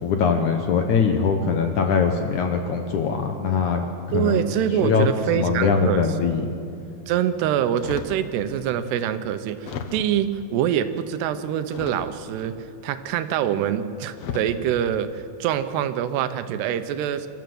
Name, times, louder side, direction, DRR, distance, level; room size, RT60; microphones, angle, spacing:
voice 1, 0.0-4.5 4.8-5.1 5.3-6.5, left 5 dB, 70° left, 5 dB, 2.0 m, -22 dB
voice 2, 4.1-6.0 7.1-12.5 12.8-17.3, right 10 dB, 85° right, 11 dB, 3.0 m, -25 dB
sound 1, 7.8-8.3 8.9-9.0 9.6-10.3 11.7-12.4 13.5-13.7 14.2-14.6 15.3-15.6, left 6 dB, 90° left, 1.4 m, -35 dB
27.0 x 13.5 x 7.8 m, 2.5 s
omnidirectional pair, 4.7 m